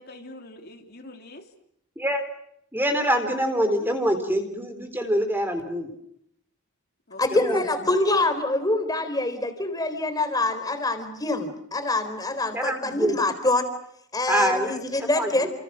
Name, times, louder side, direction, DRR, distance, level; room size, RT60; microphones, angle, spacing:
voice 1, 0.0-1.4 7.1-7.9, left 2 dB, 45° left, 3 dB, 3.2 m, -42 dB
voice 2, 2.7-5.9 7.3-7.6 12.5-13.2 14.3-15.5, equal, 10° right, 6 dB, 3.9 m, -25 dB
voice 3, 7.2-13.7 14.1-15.5, left 2 dB, 15° left, 8 dB, 4.1 m, -25 dB
30.0 x 28.0 x 6.4 m, 0.73 s
head